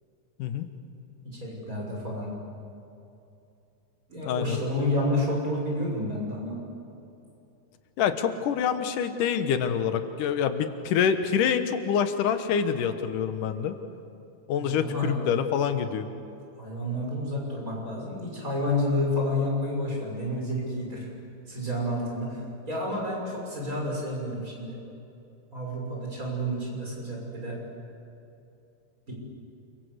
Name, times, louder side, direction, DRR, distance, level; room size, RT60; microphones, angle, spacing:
voice 1, 1.2-2.3 4.1-6.6 14.6-15.2 16.6-21.1 21.5-22.4 22.7-24.8 25.5-27.6 29.1-29.2, left 1 dB, 25° right, -2 dB, 6.7 m, -30 dB
voice 2, 4.2-4.6 8.0-13.8 14.5-16.1, left 7 dB, 90° left, 9 dB, 2.8 m, -26 dB
29.5 x 23.5 x 8.0 m, 2.8 s
omnidirectional pair, 3.6 m